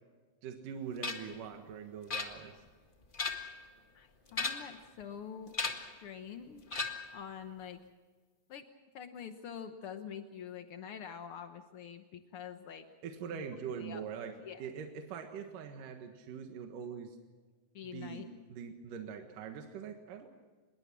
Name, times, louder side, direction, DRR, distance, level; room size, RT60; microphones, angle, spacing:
voice 1, 0.4-2.6 13.0-17.2 17.9-20.3, right 7 dB, 70° right, 5 dB, 3.0 m, -43 dB
sound 1, 1.0-1.4 2.1-2.7 3.0-3.6 4.3-4.8 5.5-6.0 6.7-7.2, left 4 dB, 40° left, 0.6 m, -37 dB
voice 2, 3.9-6.7 7.1-7.8 8.5-8.6 8.9-12.9 13.3-13.5 13.8-14.0 14.4-14.6 17.7-18.3, left 8 dB, 80° left, 7 dB, 1.2 m, -46 dB
26.0 x 21.0 x 6.1 m, 1.4 s
omnidirectional pair, 4.1 m